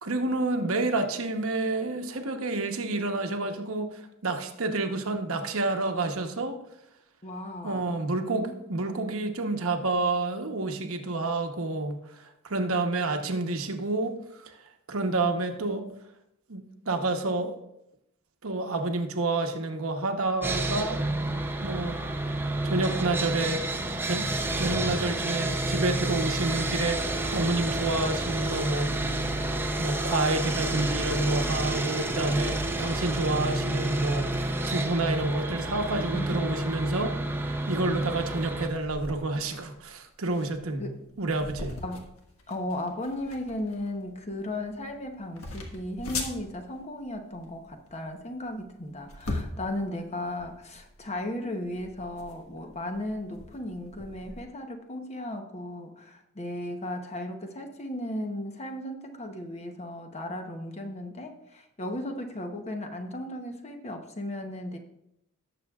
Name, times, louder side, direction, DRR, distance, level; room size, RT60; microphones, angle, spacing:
voice 1, 0.0-6.6 7.6-14.6 14.9-15.9 16.5-17.5 18.4-21.0 21.6-22.0 22.6-23.6 24.0-40.9 41.2-41.8, right 2 dB, 70° right, 5 dB, 1.0 m, -29 dB
voice 2, 7.2-7.9 36.1-36.5 40.8-41.1 41.8-42.1 42.5-64.8, left 1 dB, 30° left, 5 dB, 0.9 m, -36 dB
Sawing, 20.4-38.7, right 2 dB, 10° right, 0.6 m, -29 dB
sound 1, 38.7-54.4, left 2 dB, 80° left, 1.5 m, -41 dB
18.0 x 7.0 x 2.4 m, 0.83 s
head